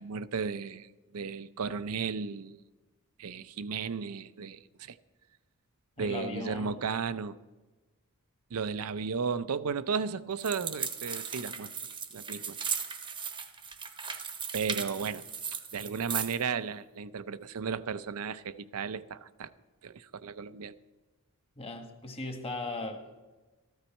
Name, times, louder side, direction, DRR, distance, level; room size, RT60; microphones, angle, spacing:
voice 1, 0.0-2.6 3.2-5.0 6.0-7.4 8.5-11.7 12.1-12.6 14.5-15.2 15.7-19.5 19.8-20.8, right 5 dB, 75° right, 0.5 m, -34 dB
voice 2, 6.0-6.7 21.6-23.2, left 2 dB, 25° left, 1.5 m, -38 dB
sound 1, 10.4-16.4, right 6 dB, 20° right, 0.9 m, -37 dB
14.5 x 13.0 x 4.4 m
head